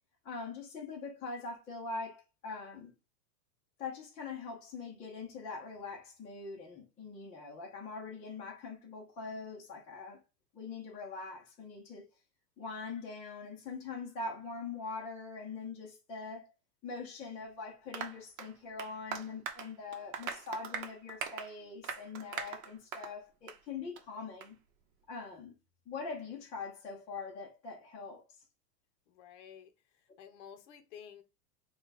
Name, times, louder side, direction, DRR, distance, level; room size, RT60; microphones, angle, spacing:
voice 1, 0.2-2.9 3.8-10.2 10.5-12.1 12.6-16.5 16.8-24.6 25.1-25.5 25.9-28.2, left 4 dB, 15° left, 0.7 m, -43 dB
Applause, 17.9-23.2 23.5-23.6 24.0-24.1 24.4-24.5, right 6 dB, 55° right, 0.9 m, -42 dB
voice 2, 29.1-31.2, left 8 dB, 45° left, 0.8 m, -52 dB
3.9 x 2.4 x 3.9 m
supercardioid pair, 160°, 49 cm